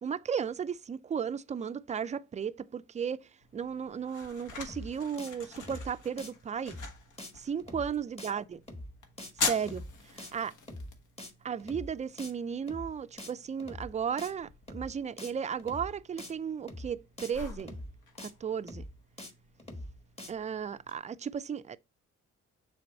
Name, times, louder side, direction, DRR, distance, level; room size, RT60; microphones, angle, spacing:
voice 1, 0.0-6.8 7.3-8.6 9.4-9.8 10.1-10.5 11.4-17.8 18.2-18.8 20.3-21.8, right 7 dB, 25° right, 0.4 m, -35 dB
sound 1, 3.4-21.0, left 4 dB, 75° left, 1.4 m, -44 dB
sound 2, 4.7-4.9 5.2-5.3 5.6-5.9 6.2-6.3 6.7-6.9 7.2-7.3 7.6-7.9 8.2-8.3 8.7-8.9 9.2-9.3 9.6-9.9 10.2-10.3 10.7-10.9 11.2-11.3 11.6-11.9 12.2-12.3 12.7-12.9 13.2-13.3 13.6-13.9 14.2-14.3 14.7-14.9 15.2-15.3 15.6-15.9 16.2-16.3 16.7-16.9 17.2-17.3 17.6-17.9 18.2-18.3 18.7-18.9 19.2-19.3 19.6-19.9 20.2-20.3, left 1 dB, 20° left, 1.4 m, -43 dB
6.7 x 3.5 x 4.1 m
cardioid pair, 90°, 30 cm